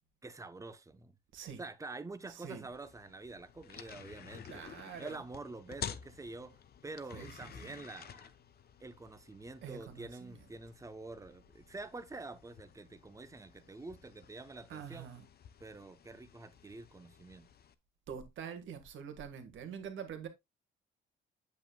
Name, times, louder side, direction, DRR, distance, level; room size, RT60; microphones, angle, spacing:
voice 1, 0.2-1.1 1.6-4.6 5.0-8.3 8.8-15.1 15.6-17.5, right 3 dB, 15° right, 0.8 m, -47 dB
voice 2, 2.3-2.7 4.4-5.2 7.1-7.7 9.6-10.4 14.7-15.2 18.1-20.3, right 7 dB, 75° right, 1.6 m, -45 dB
sound 1, 2.7-17.7, left 8 dB, 50° left, 0.7 m, -51 dB
8.3 x 7.2 x 2.2 m
cardioid pair, 90°, 20 cm